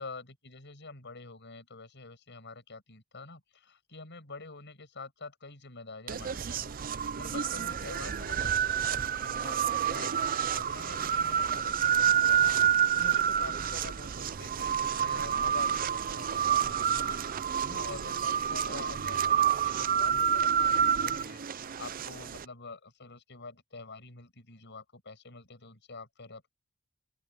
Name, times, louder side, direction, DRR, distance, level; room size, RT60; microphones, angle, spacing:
voice 1, 0.0-26.5, left 3 dB, 55° left, 7.7 m, -47 dB
sound 1, 6.1-22.4, right 8 dB, 45° right, 0.5 m, -28 dB
open air
head